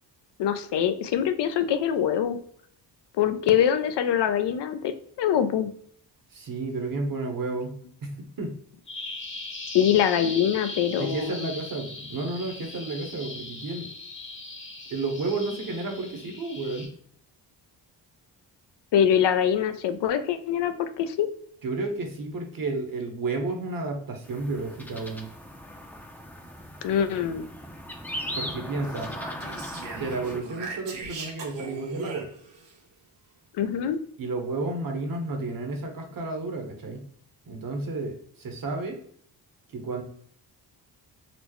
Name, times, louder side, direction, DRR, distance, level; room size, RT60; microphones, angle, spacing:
voice 1, 0.4-2.4 3.2-5.7 9.7-11.5 18.9-21.3 26.8-27.4 33.6-34.0, left 9 dB, 70° left, 10 dB, 0.5 m, -24 dB
voice 2, 6.3-8.5 11.0-13.9 14.9-16.9 21.6-25.3 28.3-29.1 29.9-32.3 34.2-37.0 37.5-39.0 39.7-40.0, right 3 dB, 50° right, 3 dB, 1.1 m, -32 dB
Bird vocalization bird call bird song, 8.9-16.9, left 2 dB, 30° left, 0.9 m, -39 dB
sound 1, 24.2-30.4, equal, 5° left, 0.6 m, -38 dB
Speech, 28.8-32.7, right 4 dB, 75° right, 0.9 m, -39 dB
4.3 x 2.0 x 3.0 m, 0.63 s
cardioid pair, 65°, 43 cm